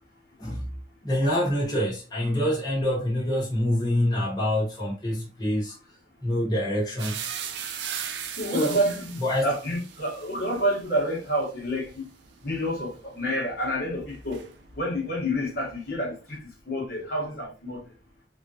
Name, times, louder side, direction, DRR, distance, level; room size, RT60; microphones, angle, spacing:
voice 1, 1.0-5.8 6.2-7.2 8.5-8.8 9.2-9.5, equal, 20° left, 1.1 m, -26 dB
sound 1, 7.0-15.0 15.2-16.4, right 8 dB, 75° right, 0.5 m, -39 dB
voice 2, 8.4-12.1 12.4-14.5 14.7-17.8, equal, 55° left, 1.0 m, -29 dB
3.6 x 2.3 x 2.6 m
head